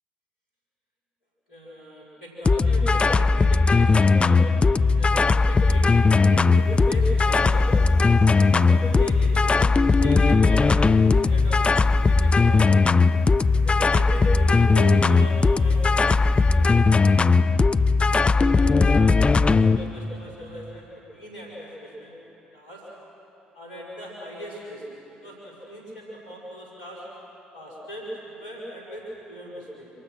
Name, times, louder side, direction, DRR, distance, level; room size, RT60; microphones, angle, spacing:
voice 1, 1.5-5.9 6.2-7.8 8.5-12.9 13.6-17.7 18.1-22.1 22.5-22.8 23.5-24.9 25.2-27.0 27.5-29.9, equal, 85° left, -4 dB, 5.3 m, -38 dB
sound 1, 2.5-19.8, left 4 dB, 25° left, 0.6 m, -18 dB
sound 2, 5.1-17.4, left 2 dB, 70° left, 2.9 m, -47 dB
26.5 x 25.0 x 6.3 m, 2.8 s
hypercardioid pair, 50°, 4 cm